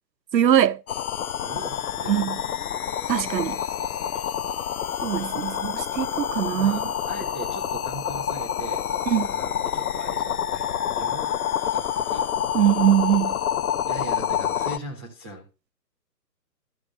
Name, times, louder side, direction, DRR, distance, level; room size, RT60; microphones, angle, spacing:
voice 1, 0.3-0.8 2.1-2.4 3.1-3.6 5.0-6.8 9.1-9.3 12.5-13.4, right 10 dB, 90° right, 0.7 m, -22 dB
sound 1, 0.9-14.8, left 9 dB, 60° left, 0.7 m, -28 dB
voice 2, 1.4-2.3 6.5-11.4 11.7-12.3 13.3-13.4 13.9-15.4, right 1 dB, 5° right, 0.5 m, -39 dB
12.0 x 6.5 x 5.1 m
figure-of-eight pair, 140°, 49 cm